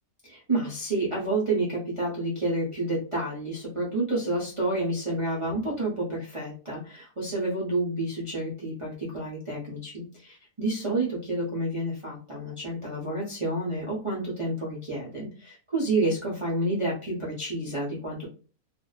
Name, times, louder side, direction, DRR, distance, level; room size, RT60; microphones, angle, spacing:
voice 1, 0.2-18.3, right 2 dB, 55° right, -6 dB, 0.3 m, -29 dB
2.5 x 2.1 x 2.2 m, 0.37 s
omnidirectional pair, 1.6 m